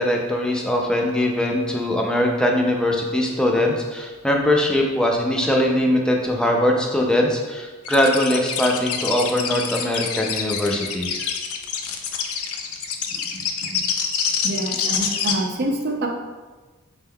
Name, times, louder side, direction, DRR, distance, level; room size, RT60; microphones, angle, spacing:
voice 1, 0.0-11.3, left 1 dB, 5° left, 0 dB, 0.4 m, -21 dB
sound 1, 7.8-15.3, left 7 dB, 85° left, 0.4 m, -26 dB
voice 2, 13.1-13.4 13.7-13.8 14.4-16.1, right 1 dB, 50° right, 2 dB, 0.5 m, -27 dB
5.2 x 3.4 x 2.2 m, 1.3 s
head